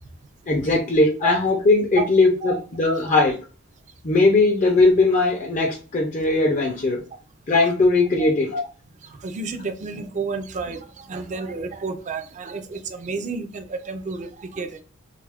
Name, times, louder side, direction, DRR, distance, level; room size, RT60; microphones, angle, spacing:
voice 1, 0.5-3.4 4.0-7.0 7.5-8.6, left 3 dB, 35° left, 1 dB, 0.4 m, -19 dB
voice 2, 9.2-14.8, right 4 dB, 35° right, 7 dB, 0.4 m, -31 dB
2.7 x 2.3 x 3.4 m, 0.37 s
head